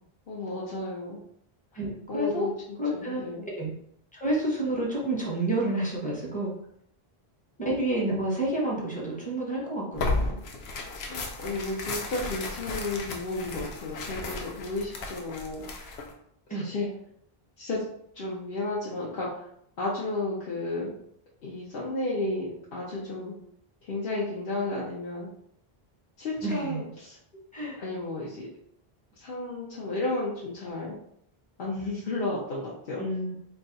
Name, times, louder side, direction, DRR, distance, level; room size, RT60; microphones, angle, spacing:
voice 1, 0.3-1.2 2.1-3.5 11.0-15.9 16.5-16.9 17.6-17.8 18.1-19.4 19.8-20.9 21.4-23.3 23.8-25.3 26.2-27.2 27.8-28.5 29.2-31.0 31.6-33.0, left 2 dB, 65° left, -6 dB, 1.0 m, -33 dB
voice 2, 1.7-2.5 2.8-3.7 4.1-6.5 7.6-10.4 16.5-16.7 26.4-26.8 27.5-27.8 33.0-33.4, right 1 dB, 10° left, -4 dB, 1.0 m, -29 dB
Tearing, 9.9-16.1, left 2 dB, 90° left, 0.9 m, -34 dB
3.2 x 2.4 x 3.9 m, 0.69 s
omnidirectional pair, 1.0 m